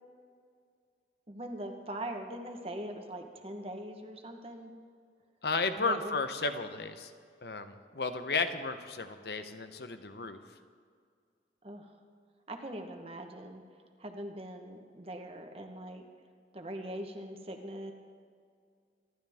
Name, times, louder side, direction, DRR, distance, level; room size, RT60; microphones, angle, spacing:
voice 1, 1.3-4.7 5.8-6.1 11.6-11.8 12.5-13.6 14.0-16.0 16.5-17.9, right 1 dB, 35° right, 4 dB, 1.2 m, -41 dB
voice 2, 5.4-7.1 7.4-10.4, left 4 dB, 65° left, 9 dB, 0.9 m, -33 dB
26.0 x 12.0 x 3.6 m, 2.2 s
head